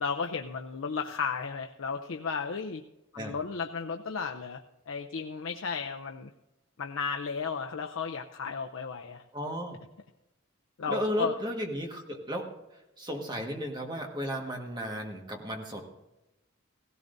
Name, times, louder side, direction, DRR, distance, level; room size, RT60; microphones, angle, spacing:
voice 1, 0.0-2.8 3.1-6.3 6.8-9.2 10.8-11.4, left 5 dB, 75° left, 4 dB, 0.6 m, -34 dB
voice 2, 9.3-9.8 10.9-15.9, equal, 20° right, 2 dB, 1.5 m, -34 dB
17.0 x 16.5 x 2.6 m, 0.96 s
head